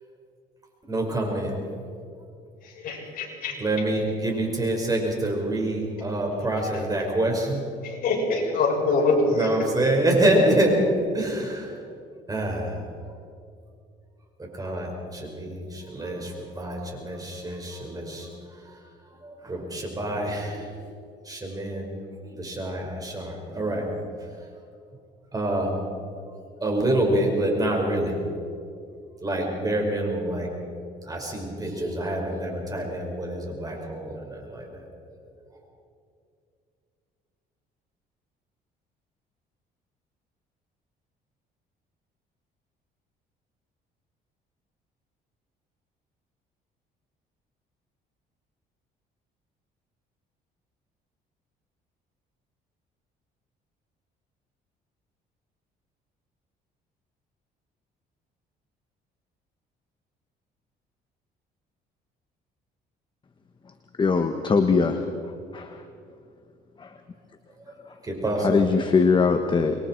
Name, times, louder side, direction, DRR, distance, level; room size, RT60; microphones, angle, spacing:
voice 1, 0.9-1.6 3.5-7.7 9.3-11.8 12.3-12.8 14.4-18.3 18.6-18.8 19.2-20.8 21.2-21.9 22.2-23.9 25.3-25.7 26.6-28.2 29.2-30.5 31.0-34.8 68.0-68.6, right 1 dB, 20° right, 1 dB, 5.4 m, -26 dB
voice 2, 2.6-3.6 7.8-9.6, left 3 dB, 60° left, -2 dB, 6.6 m, -24 dB
voice 3, 64.0-65.8 66.8-66.9 68.4-69.7, left 5 dB, 30° left, 7 dB, 1.3 m, -22 dB
26.5 x 22.0 x 4.6 m, 2.4 s
cardioid pair, 110°, 17 cm